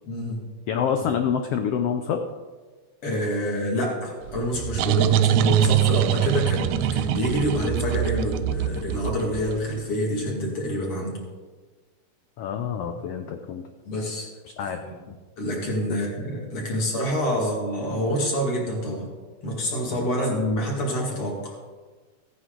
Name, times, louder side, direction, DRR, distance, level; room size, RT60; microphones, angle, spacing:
voice 1, 0.0-0.4 1.0-1.1 3.0-11.2 13.8-14.3 14.8-14.9 15.4-19.1 19.4-21.6, equal, 45° left, -1 dB, 3.1 m, -27 dB
voice 2, 0.7-2.2 12.4-13.6 14.6-14.8 15.1-15.2 15.9-16.0 17.4-17.5 19.9-20.1, left 7 dB, 85° left, 6 dB, 1.3 m, -27 dB
sound 1, 4.3-9.8, right 11 dB, 80° right, 1.8 m, -23 dB
15.5 x 9.5 x 3.8 m, 1.4 s
omnidirectional pair, 3.6 m